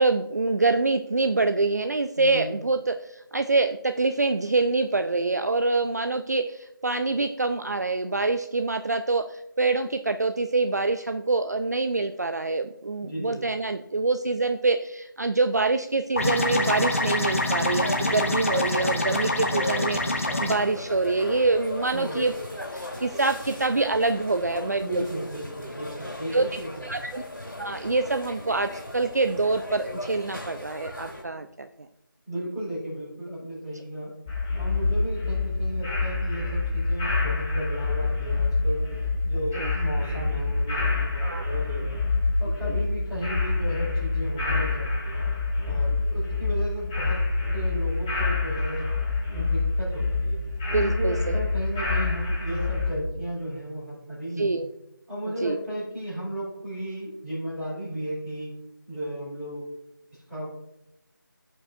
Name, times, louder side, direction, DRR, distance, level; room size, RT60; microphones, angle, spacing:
voice 1, 0.0-25.0 26.3-26.5 26.9-27.2 27.6-31.7 33.7-33.8 39.5-39.7 41.2-41.4 42.7-42.8 50.7-51.4 54.4-54.7 55.4-55.6, right 3 dB, 50° right, 7 dB, 0.4 m, -25 dB
voice 2, 2.1-2.5 13.0-13.4 21.9-22.3 24.6-26.9 32.3-34.1 34.5-38.8 39.2-42.0 42.4-45.2 45.6-47.2 47.5-48.8 49.3-50.4 50.7-54.6 55.1-58.5 58.9-59.6 60.3-60.5, right 1 dB, ahead, -16 dB, 3.1 m, -34 dB
sound 1, 16.2-20.5, left 2 dB, 40° left, 0.8 m, -26 dB
sound 2, 16.6-31.2, left 1 dB, 65° left, 2.9 m, -37 dB
sound 3, 34.3-52.9, left 3 dB, 15° left, 1.7 m, -26 dB
15.0 x 5.4 x 2.5 m, 0.87 s
figure-of-eight pair, 170°, 12 cm